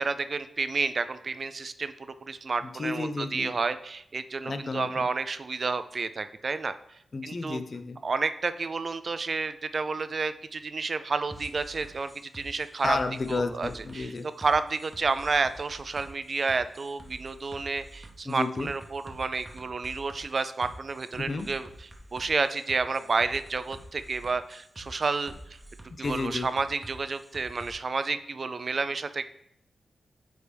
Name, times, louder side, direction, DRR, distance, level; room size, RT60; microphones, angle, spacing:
voice 1, 0.0-6.7 7.2-7.6 8.0-13.0 13.3-14.1 14.4-21.7 22.1-25.3 26.0-29.2, right 4 dB, 50° right, 12 dB, 0.3 m, -30 dB
voice 2, 2.6-3.5 4.4-5.1 7.1-8.0 12.8-14.3 18.3-18.7 21.2-21.5 26.0-26.5, left 3 dB, 45° left, 8 dB, 0.5 m, -32 dB
sound 1, 11.3-27.7, right 1 dB, 15° right, 0.8 m, -48 dB
9.1 x 3.3 x 3.4 m, 0.75 s
wide cardioid pair, 110°, 0 cm